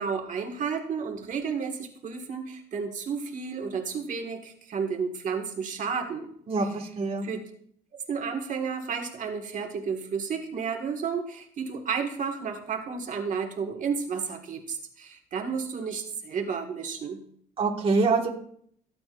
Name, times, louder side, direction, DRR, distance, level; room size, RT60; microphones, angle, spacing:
voice 1, 0.0-6.3 7.2-7.4 8.1-17.2, right 6 dB, 50° right, 2 dB, 1.8 m, -32 dB
voice 2, 6.5-7.3 17.6-18.3, right 3 dB, 35° right, -1 dB, 1.7 m, -25 dB
17.0 x 8.8 x 2.5 m, 0.65 s
cardioid pair, 110°, 17 cm